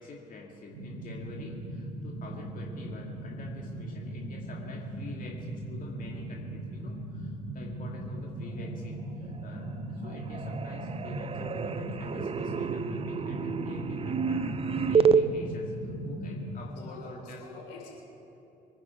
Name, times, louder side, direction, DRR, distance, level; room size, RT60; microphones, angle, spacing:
voice 1, 0.0-17.4, left 3 dB, 40° left, -2 dB, 2.3 m, -47 dB
sound 1, 0.7-16.6, right 1 dB, 70° right, 2.6 m, -38 dB
sound 2, 9.2-9.8 10.0-15.2, right 6 dB, 30° right, 0.7 m, -29 dB
voice 2, 16.9-17.9, left 4 dB, 75° left, -2 dB, 4.1 m, -46 dB
25.0 x 10.5 x 4.6 m, 2.9 s
figure-of-eight pair, 50°, 21 cm